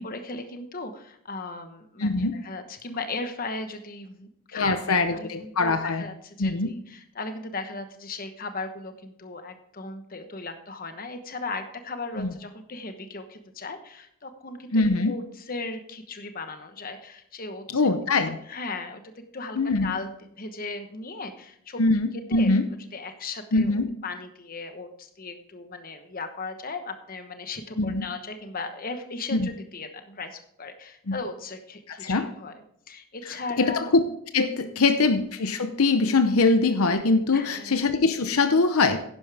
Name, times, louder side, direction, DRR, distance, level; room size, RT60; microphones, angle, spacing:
voice 1, 0.0-17.8 18.5-20.1 20.4-21.8 22.3-22.5 22.9-32.5 32.9-33.9 34.6-34.8 37.3-37.8, left 3 dB, 40° left, 7 dB, 1.1 m, -37 dB
voice 2, 2.0-2.4 4.5-6.1 6.4-6.7 12.2-12.3 14.7-15.1 17.7-18.4 19.5-19.9 21.8-22.6 23.5-23.9 27.8-28.0 29.3-29.5 31.1-31.2 31.9-32.3 33.6-34.0 34.3-39.0, left 3 dB, 75° left, 9 dB, 0.8 m, -23 dB
11.0 x 10.5 x 3.5 m, 0.68 s
head